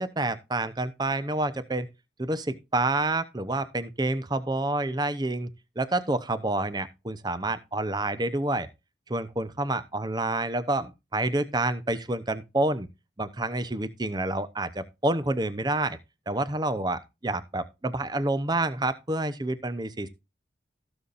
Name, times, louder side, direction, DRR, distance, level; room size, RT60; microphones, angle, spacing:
voice 1, 0.0-1.9 2.2-5.5 5.8-8.7 9.1-12.9 13.2-16.0 16.3-20.1, right 2 dB, 20° right, 0.7 m, -28 dB
16.5 x 7.0 x 2.5 m
head